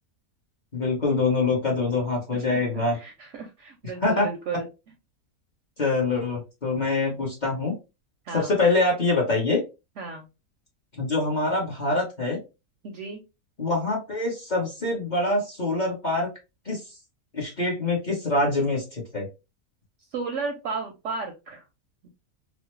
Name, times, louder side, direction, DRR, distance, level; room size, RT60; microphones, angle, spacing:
voice 1, 0.7-3.0 4.0-4.3 5.8-7.7 8.3-9.6 11.0-12.4 13.6-16.3 16.7-16.8 17.3-19.3, left 3 dB, 35° left, -2 dB, 0.8 m, -24 dB
voice 2, 2.9-4.7 8.3-8.5 10.0-10.3 12.8-13.2 20.1-21.6 22.0-22.1, right 4 dB, 65° right, 4 dB, 0.7 m, -34 dB
3.1 x 2.0 x 3.0 m, 0.27 s
omnidirectional pair, 1.6 m